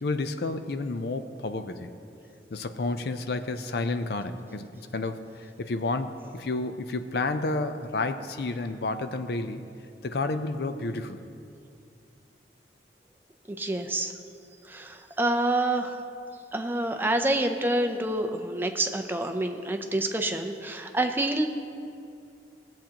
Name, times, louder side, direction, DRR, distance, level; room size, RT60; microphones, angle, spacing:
voice 1, 0.0-1.9 2.5-9.7 10.0-11.2, left 3 dB, 60° left, 9 dB, 0.5 m, -31 dB
voice 2, 13.6-14.1 14.7-16.0 16.5-21.5, right 1 dB, 10° right, 5 dB, 0.5 m, -27 dB
17.5 x 7.5 x 2.9 m, 2.5 s
head